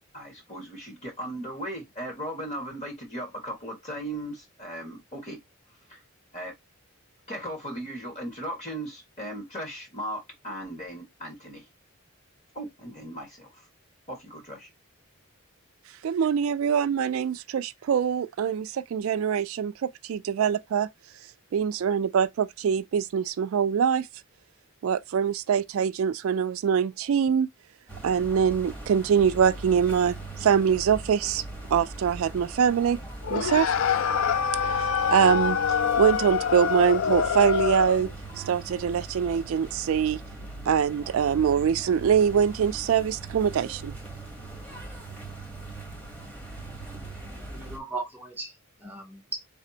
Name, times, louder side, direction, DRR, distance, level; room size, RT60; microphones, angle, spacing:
voice 1, 0.1-5.4 5.7-6.0 6.3-6.5 7.3-11.7 12.5-13.7 14.1-14.7, right 1 dB, 35° left, 1.6 m, -37 dB
voice 2, 16.0-20.9 21.5-24.1 24.8-27.5 28.0-31.4 31.7-33.0 33.3-33.7 34.6-38.1 38.4-40.2 40.7-44.0, right 7 dB, 70° right, 0.3 m, -24 dB
sound 1, 27.9-47.8, right 2 dB, 5° left, 1.0 m, -40 dB
sound 2, 33.2-38.1, left 7 dB, 65° left, 0.4 m, -25 dB
voice 3, 47.5-49.4, right 3 dB, 10° right, 0.7 m, -37 dB
4.1 x 3.3 x 2.8 m
head